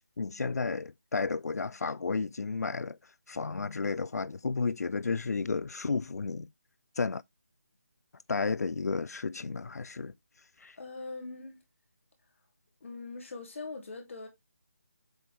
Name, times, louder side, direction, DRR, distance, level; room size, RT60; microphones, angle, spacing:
voice 1, 0.2-6.5 7.0-7.2 8.3-10.1 10.6-10.8, left 4 dB, 90° left, 0.4 m, -32 dB
voice 2, 10.8-11.6 12.8-14.3, left 3 dB, 55° left, 2.8 m, -41 dB
7.6 x 4.6 x 3.3 m
figure-of-eight pair, 165°, 8 cm